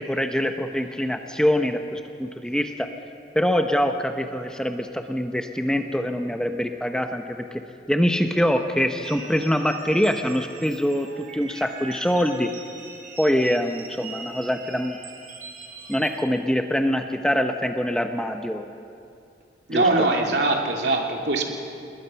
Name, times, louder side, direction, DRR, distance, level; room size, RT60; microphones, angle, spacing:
voice 1, 0.0-2.9 3.3-7.4 7.9-12.5 13.2-15.0 15.9-18.7 19.7-20.1, equal, 5° left, 5 dB, 0.8 m, -24 dB
sound 1, 9.0-16.2, right 4 dB, 50° right, 3.7 m, -42 dB
voice 2, 19.7-21.4, right 2 dB, 75° right, 1 dB, 3.0 m, -22 dB
27.5 x 20.5 x 5.8 m, 2.5 s
head